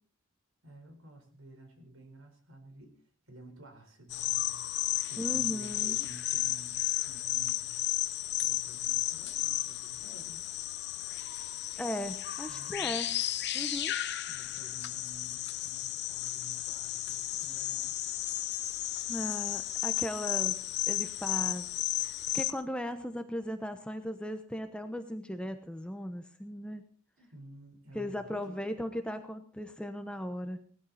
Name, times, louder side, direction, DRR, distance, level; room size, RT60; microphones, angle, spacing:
voice 1, 0.6-3.0 3.3-4.6 5.1-7.8 8.4-10.5 12.5-13.1 14.2-17.9 27.2-28.6, right 1 dB, 65° right, 5 dB, 4.6 m, -52 dB
sound 1, 4.1-22.5, left 14 dB, 50° left, 0.9 m, -33 dB
voice 2, 5.2-6.0 11.7-13.1 13.5-13.9 19.1-20.6 20.9-21.7 22.0-26.8 27.9-30.6, equal, 5° left, 8 dB, 0.9 m, -37 dB
18.5 x 14.0 x 4.2 m, 0.43 s
head